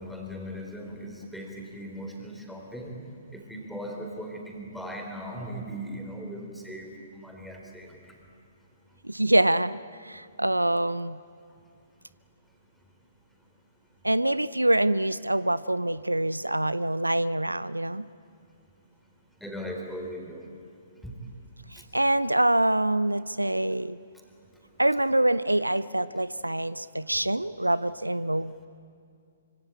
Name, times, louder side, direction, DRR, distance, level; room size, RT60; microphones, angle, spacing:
voice 1, 0.0-3.0 3.3-8.0 19.4-20.4 21.0-21.2, equal, ahead, 0 dB, 4.0 m, -38 dB
voice 2, 9.0-11.2 14.0-18.1 21.7-24.0 24.8-28.6, right 1 dB, 85° right, 17 dB, 0.6 m, -25 dB
25.5 x 25.5 x 8.6 m, 2.4 s
figure-of-eight pair, 125°, 0 cm